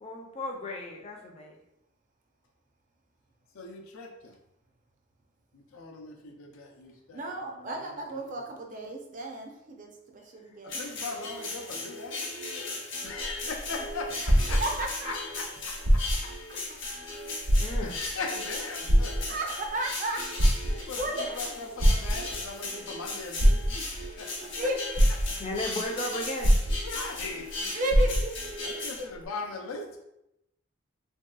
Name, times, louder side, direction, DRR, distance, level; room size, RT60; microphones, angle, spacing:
voice 1, 0.0-1.6 17.6-17.9 25.4-26.5, left 1 dB, 30° left, 0 dB, 0.4 m, -35 dB
voice 2, 3.5-4.4 5.5-8.4 10.6-12.3 13.0-16.3 17.8-19.4 20.6-24.7 26.8-27.7 28.6-30.0, left 3 dB, 90° left, 1 dB, 0.5 m, -40 dB
voice 3, 7.1-10.8 14.1-15.1 19.1-21.5 22.9-23.0 24.1-25.0 27.7-29.1, right 1 dB, 40° right, 2 dB, 0.4 m, -35 dB
sound 1, 10.7-29.0, left 2 dB, 65° left, 0.8 m, -37 dB
sound 2, 13.1-15.1 15.7-16.4 16.8-16.9 17.4-18.1 18.9-19.7 20.2-21.1 21.8-22.5 23.4-24.1 24.6-24.7 24.9-25.7 26.4-27.2 27.5-27.6 27.9-28.5 29.2-29.3, equal, 85° right, 0.8 m, -23 dB
3.1 x 2.7 x 2.2 m, 0.85 s
head